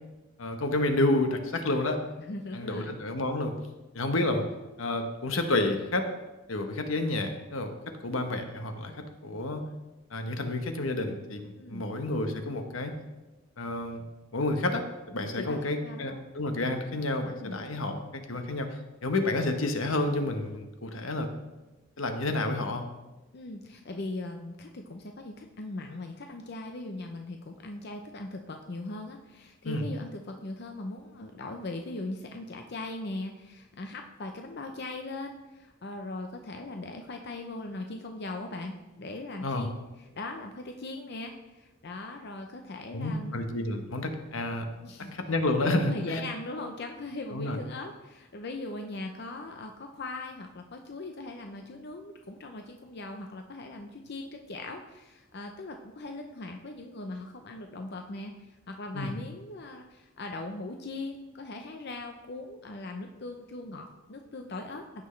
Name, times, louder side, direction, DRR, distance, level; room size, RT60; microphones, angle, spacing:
voice 1, 0.4-2.0 2.5-3.5 3.9-4.4 4.8-6.1 6.5-7.7 8.0-9.6 10.1-12.9 13.6-14.0 14.3-18.0 18.3-21.3 22.0-22.9 29.6-29.8 39.4-39.7 42.9-44.7 45.1-46.2 47.3-47.6 58.9-59.1, left 2 dB, 80° left, 6 dB, 1.0 m, -30 dB
voice 2, 2.2-2.9 11.6-11.8 15.3-16.2 17.2-17.6 23.3-39.8 40.1-43.4 44.8-45.2 45.7-65.1, left 2 dB, 55° left, 4 dB, 0.6 m, -39 dB
15.0 x 6.1 x 3.2 m, 1.1 s
head